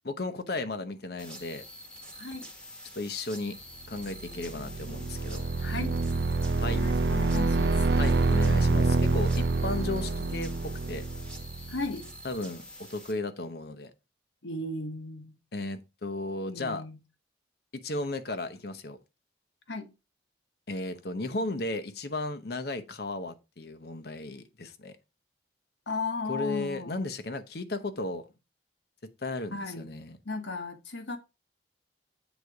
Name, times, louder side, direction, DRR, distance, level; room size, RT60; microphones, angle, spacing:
voice 1, 0.0-1.6 2.9-3.6 3.9-5.4 6.6-6.8 8.0-10.5 10.9-11.0 12.2-12.6 12.9-13.9 15.5-16.8 17.8-19.0 20.7-25.0 26.3-28.3 29.2-30.2, left 2 dB, 55° left, 0.8 m, -35 dB
sound 1, 1.2-13.1, equal, 5° left, 1.3 m, -47 dB
voice 2, 2.2-2.5 5.6-6.0 6.7-7.8 11.7-12.1 14.4-15.3 16.5-17.0 19.7-19.9 25.9-27.0 29.5-29.9 30.2-31.2, left 3 dB, 80° left, 1.2 m, -35 dB
sound 2, 4.2-12.0, right 3 dB, 60° right, 0.5 m, -27 dB
8.0 x 4.0 x 4.8 m
head